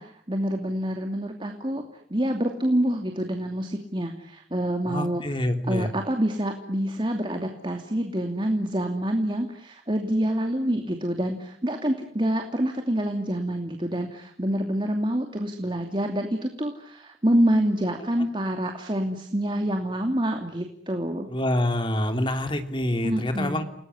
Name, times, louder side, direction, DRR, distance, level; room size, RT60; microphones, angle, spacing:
voice 1, 0.0-1.8 2.1-5.2 5.6-21.3 23.0-23.6, right 1 dB, 25° right, 4 dB, 2.7 m, -27 dB
voice 2, 4.9-5.9 21.3-23.6, left 1 dB, 25° left, 6 dB, 3.3 m, -26 dB
30.0 x 20.5 x 9.8 m, 0.72 s
head